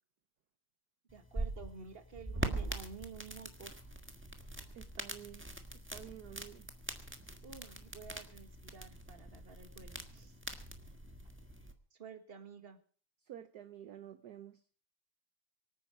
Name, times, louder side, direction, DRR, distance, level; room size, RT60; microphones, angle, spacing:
sound 1, 1.1-11.7, right 2 dB, 5° right, 1.1 m, -43 dB
voice 1, 1.1-3.9 7.4-10.4 11.9-12.8, right 5 dB, 30° right, 8 dB, 1.7 m, -51 dB
voice 2, 4.7-5.5 5.9-6.7 13.3-14.6, right 11 dB, 60° right, 10 dB, 1.2 m, -50 dB
24.5 x 9.2 x 5.0 m, 0.44 s
omnidirectional pair, 2.4 m